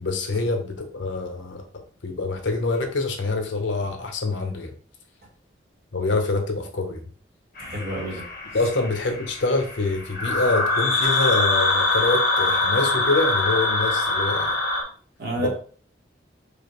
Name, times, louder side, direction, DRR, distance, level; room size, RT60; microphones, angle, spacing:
voice 1, 0.0-1.6 2.0-4.7 5.9-7.0 8.1-8.2 8.5-14.6 15.4-15.5, left 3 dB, 80° left, 4 dB, 0.9 m, -25 dB
sound 1, 7.6-14.8, left 2 dB, 50° left, 1.0 m, -24 dB
voice 2, 7.6-8.3 15.2-15.5, right 1 dB, 50° right, -2 dB, 1.4 m, -29 dB
4.9 x 2.4 x 3.1 m, 0.43 s
head